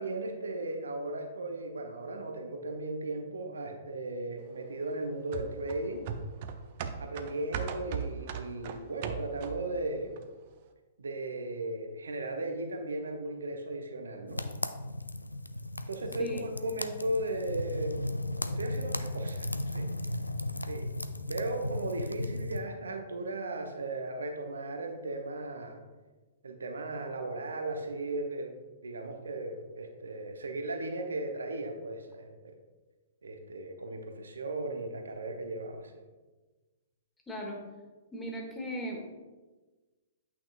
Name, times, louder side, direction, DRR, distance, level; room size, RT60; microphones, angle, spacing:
voice 1, 0.0-6.0 7.0-10.1 11.0-14.4 15.9-18.1 18.4-19.9 20.6-20.9 21.3-25.8 26.4-32.5 33.2-36.0, right 2 dB, 70° right, 5 dB, 0.8 m, -36 dB
sound 1, 5.3-9.8 10.2-10.3, right 7 dB, 45° right, 0.5 m, -38 dB
sound 2, 14.3-22.6, left 1 dB, 85° left, 0.3 m, -36 dB
voice 2, 37.3-37.6 38.1-39.0, equal, 10° left, 0 dB, 1.4 m, -37 dB
8.5 x 5.8 x 2.4 m, 1.2 s
figure-of-eight pair, 115°, 0 cm